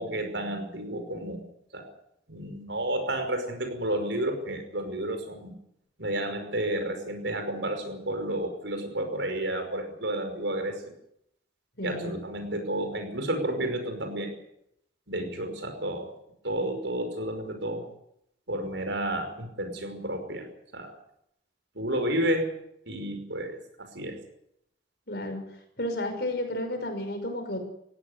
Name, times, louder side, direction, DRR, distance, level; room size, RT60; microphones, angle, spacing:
voice 1, 0.0-1.4 1.7-1.8 2.3-5.5 6.0-10.8 11.8-14.3 15.1-16.1 16.4-17.9 18.5-20.5 20.7-21.0 21.7-22.5 22.9-24.2, right 1 dB, 75° right, 6 dB, 5.4 m, -31 dB
voice 2, 11.8-12.2 25.1-25.4 25.8-27.6, left 1 dB, 55° left, 6 dB, 5.9 m, -32 dB
19.0 x 16.0 x 9.7 m, 0.75 s
head